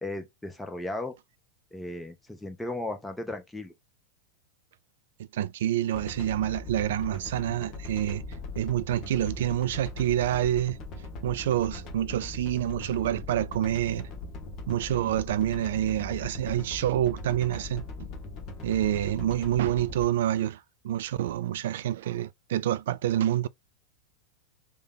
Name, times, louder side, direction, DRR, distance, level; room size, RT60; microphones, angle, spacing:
voice 1, 0.0-1.1 1.7-3.7, left 2 dB, 5° left, 0.9 m, -35 dB
voice 2, 5.3-8.2 8.6-10.8 11.2-14.1 14.7-18.1 18.6-23.5, right 12 dB, 55° right, 0.3 m, -27 dB
sound 1, 5.9-20.0, left 2 dB, 35° left, 0.9 m, -40 dB
3.3 x 2.2 x 3.7 m
figure-of-eight pair, 90°, 0 cm